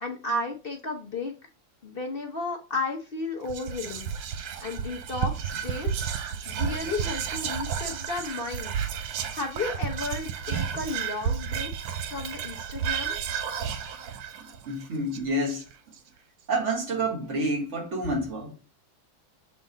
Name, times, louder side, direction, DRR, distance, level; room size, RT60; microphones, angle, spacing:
voice 1, 0.0-1.3 1.8-4.1 4.6-11.7 12.1-13.2, left 3 dB, 45° left, 0.8 m, -33 dB
Whispering, 3.5-15.9, right 7 dB, 80° right, 1.4 m, -32 dB
voice 2, 14.4-15.7 16.5-18.6, right 1 dB, 40° right, 1.5 m, -29 dB
7.1 x 3.9 x 3.8 m
omnidirectional pair, 2.1 m